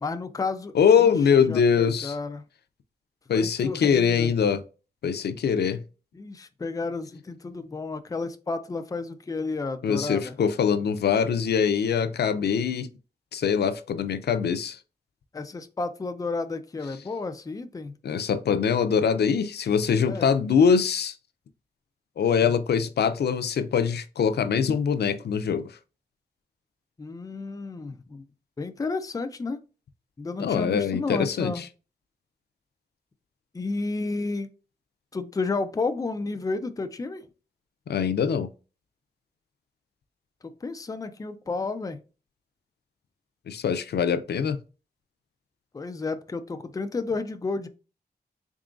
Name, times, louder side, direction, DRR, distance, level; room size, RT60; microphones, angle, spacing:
voice 1, 0.0-2.4 3.3-4.3 6.1-10.3 15.3-18.0 20.0-20.3 27.0-28.2 28.6-29.6 30.2-31.6 33.5-34.5 35.1-37.3 40.4-42.0 45.7-47.7, left 3 dB, 20° left, 0.4 m, -32 dB
voice 2, 0.7-2.2 3.3-4.6 5.0-5.8 9.8-12.9 13.3-14.8 18.0-21.1 22.2-25.7 30.4-31.7 37.9-38.5 43.5-44.6, left 7 dB, 85° left, 0.4 m, -23 dB
3.7 x 3.6 x 2.4 m
wide cardioid pair, 140°, 17 cm